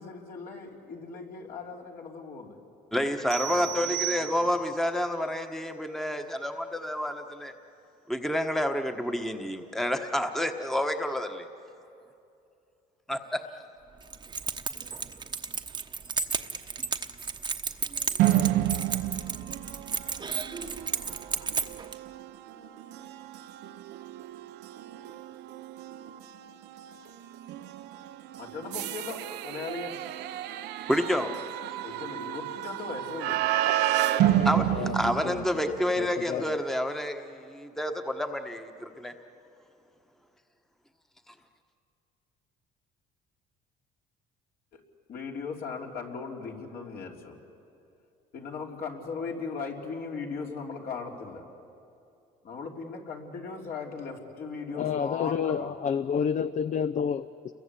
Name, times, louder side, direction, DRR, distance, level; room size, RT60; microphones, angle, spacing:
voice 1, 0.0-2.5 3.4-4.3 28.4-29.9 31.8-33.4 34.2-34.8 44.7-44.8 45.1-47.3 48.3-51.4 52.4-55.8, left 5 dB, 60° left, 0 dB, 3.5 m, -38 dB
voice 2, 2.9-7.5 8.1-11.5 13.1-13.4 30.9-31.3 34.4-34.7 34.9-39.1 41.3-41.4, left 1 dB, ahead, 6 dB, 1.2 m, -29 dB
sound 1, 3.3-4.9, right 17 dB, 55° right, 0.8 m, -34 dB
Keys jangling, 14.0-22.0, right 5 dB, 25° right, 1.1 m, -33 dB
sound 2, 18.2-35.9, right 13 dB, 85° right, 0.8 m, -31 dB
voice 3, 34.7-35.5 36.0-36.6 54.7-57.5, left 7 dB, 45° left, 13 dB, 0.6 m, -30 dB
29.0 x 22.5 x 8.4 m, 2.6 s
cardioid pair, 110°, 17 cm